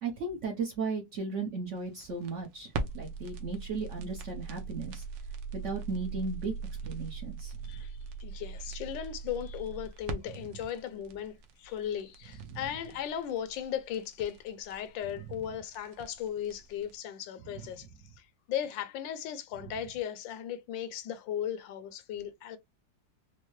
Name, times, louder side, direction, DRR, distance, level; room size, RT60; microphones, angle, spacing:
voice 1, 0.0-5.0 5.5-6.5 6.8-7.6 12.5-12.6, right 4 dB, 60° right, 0.8 m, -36 dB
sound 1, 1.8-16.9, right 4 dB, 80° right, 1.4 m, -41 dB
voice 2, 7.6-17.9 18.1-22.6, left 9 dB, 80° left, 1.3 m, -37 dB
4.5 x 2.0 x 3.0 m
omnidirectional pair, 2.0 m